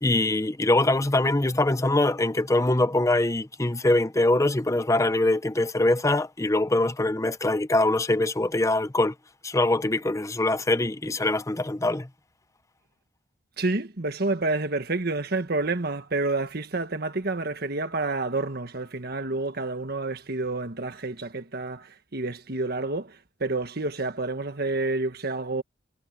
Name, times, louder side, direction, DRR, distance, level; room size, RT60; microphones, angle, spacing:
voice 1, 0.0-9.1 9.4-12.1, left 2 dB, 15° left, 0.8 m, -23 dB
voice 2, 13.6-25.6, right 2 dB, 60° right, 1.5 m, -29 dB
head